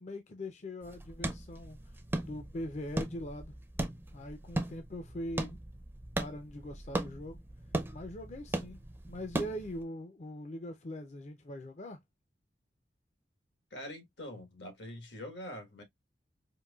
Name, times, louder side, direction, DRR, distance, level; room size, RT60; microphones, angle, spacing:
voice 1, 0.0-1.9 2.2-3.5 4.1-5.6 6.2-7.4 7.9-8.8 9.1-12.0, left 1 dB, 40° left, 0.5 m, -41 dB
sound 1, 0.8-9.8, right 1 dB, 10° right, 0.5 m, -38 dB
voice 2, 13.7-15.8, left 1 dB, 80° left, 1.4 m, -44 dB
4.5 x 2.6 x 2.3 m
head